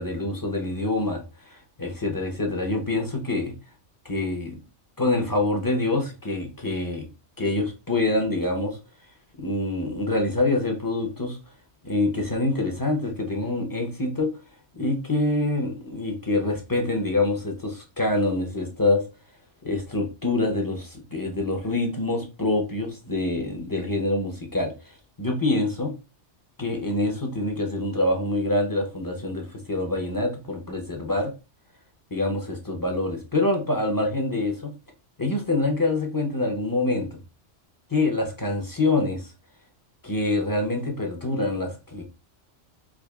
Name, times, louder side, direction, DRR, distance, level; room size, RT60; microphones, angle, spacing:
voice 1, 0.0-3.5 4.0-4.6 5.0-7.1 7.4-8.8 9.4-11.4 11.8-14.3 14.7-19.0 19.6-24.7 25.2-25.9 26.6-31.3 32.1-34.7 35.2-37.2 37.9-39.3 40.0-42.0, left 2 dB, 25° left, 0.4 m, -26 dB
4.8 x 2.8 x 2.3 m
omnidirectional pair, 1.2 m